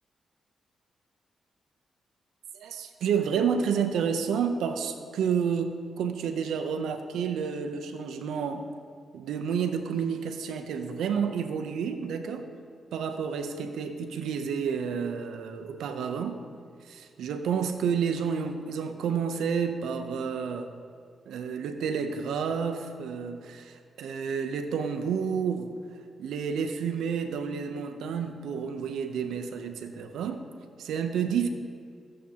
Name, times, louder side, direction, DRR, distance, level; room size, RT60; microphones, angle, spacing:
voice 1, 2.5-8.6 9.1-12.5 12.9-16.4 16.8-20.8 21.3-25.7 26.2-30.4 30.8-31.5, right 6 dB, 85° right, 7 dB, 0.6 m, -30 dB
14.5 x 7.4 x 2.9 m, 2.2 s
cardioid pair, 65°, 0 cm